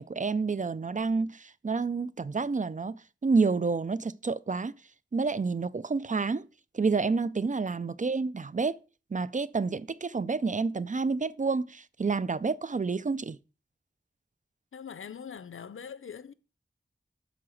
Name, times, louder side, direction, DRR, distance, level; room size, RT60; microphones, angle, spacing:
voice 1, 0.0-4.8 5.1-6.5 6.7-8.8 9.1-13.4, right 4 dB, 40° right, 0.4 m, -29 dB
voice 2, 14.7-16.3, left 7 dB, 90° left, 0.4 m, -42 dB
7.7 x 4.1 x 6.3 m
wide cardioid pair, 40°, 20 cm